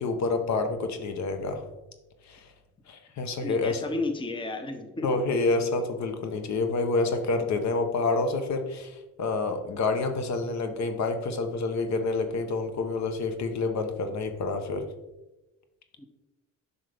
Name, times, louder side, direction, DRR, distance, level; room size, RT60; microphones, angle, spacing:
voice 1, 0.0-1.6 2.3-2.5 2.9-3.8 5.0-14.9, left 3 dB, 65° left, 7 dB, 1.0 m, -28 dB
voice 2, 3.4-5.1 16.0-16.1, left 2 dB, 15° left, 7 dB, 0.8 m, -32 dB
7.4 x 5.5 x 3.4 m, 1.0 s
cardioid pair, 90°, 30 cm